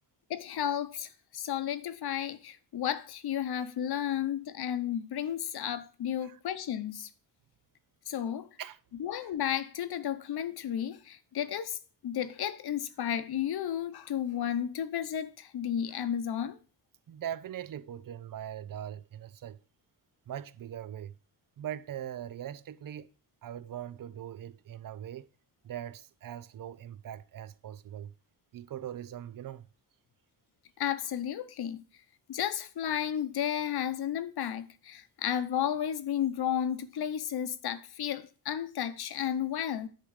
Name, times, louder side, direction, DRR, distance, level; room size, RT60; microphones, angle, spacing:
voice 1, 0.3-7.1 8.1-8.5 9.0-16.6 30.8-31.8 32.3-39.9, left 10 dB, 75° left, 0.9 m, -33 dB
voice 2, 17.1-19.6 20.3-21.2 21.6-23.1 23.4-25.3 25.6-28.1 28.5-29.7, right 10 dB, 60° right, 0.6 m, -41 dB
10.0 x 3.7 x 6.4 m
wide cardioid pair, 115°, 39 cm